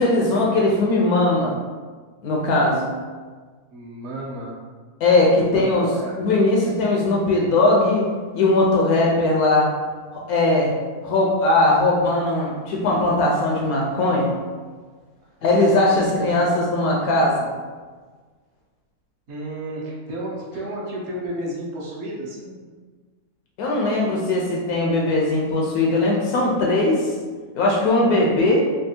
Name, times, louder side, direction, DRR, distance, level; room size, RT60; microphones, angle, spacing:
voice 1, 0.0-1.6 2.2-2.9 5.0-5.9 6.2-8.1 8.3-9.7 10.3-10.7 11.0-14.3 15.4-17.5 23.6-27.1 27.5-28.6, left 2 dB, 75° left, -2 dB, 1.1 m, -19 dB
voice 2, 3.7-4.6 5.4-6.2 15.9-16.4 19.3-22.6, right 1 dB, 55° right, -4 dB, 0.9 m, -32 dB
3.4 x 2.3 x 2.7 m, 1.4 s
omnidirectional pair, 1.6 m